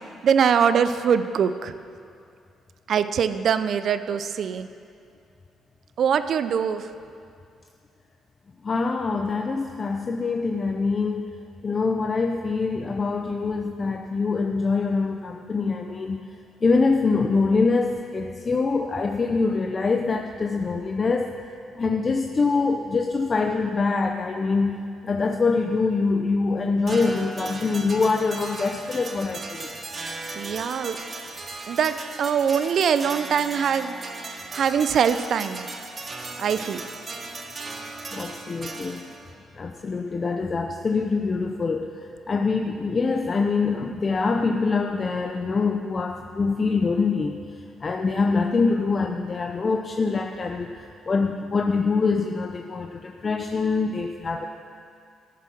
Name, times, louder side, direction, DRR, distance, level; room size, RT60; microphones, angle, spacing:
voice 1, 0.2-1.7 2.9-4.7 6.0-6.9 30.4-31.0 31.7-33.9 34.5-35.7 36.4-36.8, right 7 dB, 60° right, 12 dB, 0.5 m, -23 dB
voice 2, 8.6-11.3 11.6-16.2 16.6-21.4 21.7-29.8 38.1-39.1 39.5-54.5, left 4 dB, 35° left, 4 dB, 0.5 m, -24 dB
sound 1, 26.9-39.3, right 3 dB, 35° right, 1.2 m, -37 dB
14.0 x 6.9 x 6.2 m, 2.4 s
cardioid pair, 90°, 0 cm